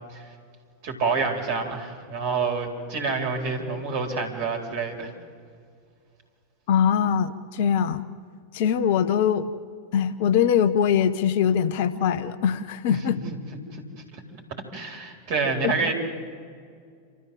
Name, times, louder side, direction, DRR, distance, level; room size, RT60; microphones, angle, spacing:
voice 1, 0.8-5.1 12.9-13.2 13.7-13.8 14.1-14.2 14.7-15.9, right 4 dB, 45° right, 4 dB, 4.2 m, -28 dB
voice 2, 6.7-8.1 8.5-9.5 9.9-13.2 15.6-15.7, left 8 dB, 50° left, 12 dB, 0.9 m, -22 dB
28.5 x 14.0 x 7.9 m, 2.2 s
figure-of-eight pair, 90°, 0 cm